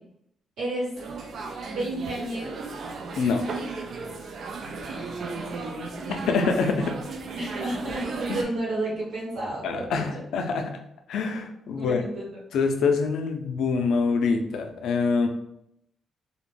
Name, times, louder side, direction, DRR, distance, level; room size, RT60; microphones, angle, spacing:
voice 1, 0.6-0.9 1.7-2.5 4.8-6.1 7.3-10.1 11.8-12.3, right 1 dB, 85° right, -6 dB, 1.3 m, -32 dB
sound 1, 1.0-8.4, right 4 dB, 60° right, 0.3 m, -35 dB
voice 2, 6.3-7.0 8.3-8.4 9.6-10.8 11.1-12.0 12.5-15.3, left 4 dB, 85° left, 5 dB, 0.4 m, -25 dB
2.4 x 2.1 x 3.2 m, 0.77 s
cardioid pair, 120°, 0 cm